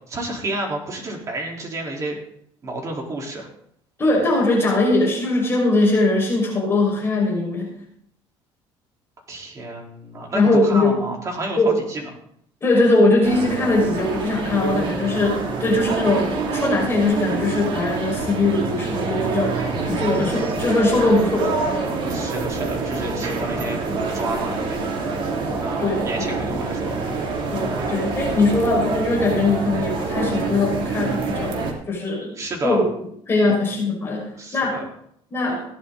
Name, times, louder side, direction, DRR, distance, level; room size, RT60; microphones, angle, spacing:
voice 1, 0.1-2.2 2.6-3.5 9.3-12.1 19.5-20.2 22.1-23.8 24.1-25.0 25.6-27.0 32.4-32.8 33.5-33.6 34.3-34.8, right 2 dB, 30° right, -1 dB, 4.0 m, -30 dB
voice 2, 4.0-7.7 10.3-11.1 11.6-11.8 12.6-21.6 25.8-26.3 27.5-32.3 32.6-32.9 33.3-34.8 35.3-35.6, left 2 dB, 20° left, -2 dB, 5.6 m, -21 dB
sound 1, 13.2-31.7, right 4 dB, 55° right, 3.0 m, -26 dB
17.0 x 10.5 x 4.1 m, 0.69 s
cardioid pair, 135°, 10 cm